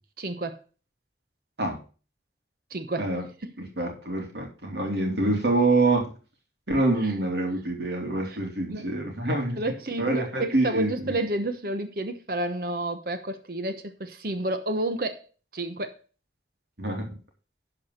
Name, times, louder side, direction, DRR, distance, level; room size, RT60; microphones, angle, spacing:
voice 1, 0.2-0.6 2.7-3.1 3.4-3.5 7.0-7.1 8.3-8.4 8.7-8.9 9.6-15.3 15.5-16.0, right 2 dB, 55° right, 8 dB, 1.0 m, -30 dB
voice 2, 3.6-6.1 6.7-9.6 10.0-11.1 16.8-17.1, right 2 dB, 75° right, 1 dB, 3.1 m, -26 dB
12.0 x 4.9 x 6.4 m, 0.35 s
head